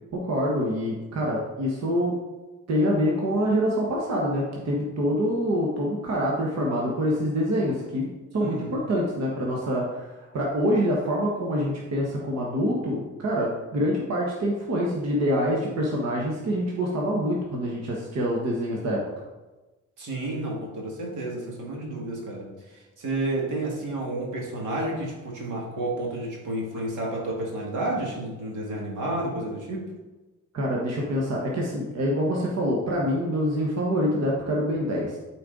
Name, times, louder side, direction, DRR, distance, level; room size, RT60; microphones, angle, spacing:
voice 1, 0.1-2.1 2.7-8.1 8.3-19.0 30.5-35.2, equal, 60° right, -3 dB, 1.4 m, -26 dB
voice 2, 8.4-8.8 20.0-29.9, right 2 dB, 80° right, -2 dB, 2.1 m, -31 dB
8.7 x 4.5 x 3.9 m, 1.2 s
cardioid pair, 90°, 30 cm